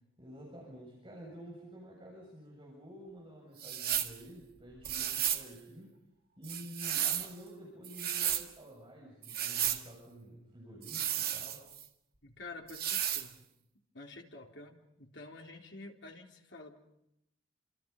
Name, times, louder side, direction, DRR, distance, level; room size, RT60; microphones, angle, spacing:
voice 1, 0.2-6.0 6.4-11.7, equal, 25° right, -3 dB, 7.5 m, -50 dB
sound 1, 3.6-4.2 4.8-5.5 6.4-7.3 7.8-8.5 9.2-9.8 10.8-11.8 12.7-13.3, right 10 dB, 50° right, 1.9 m, -33 dB
voice 2, 12.2-13.4 13.9-16.8, left 2 dB, 60° left, 1 dB, 4.0 m, -49 dB
30.0 x 27.5 x 5.5 m, 0.82 s
head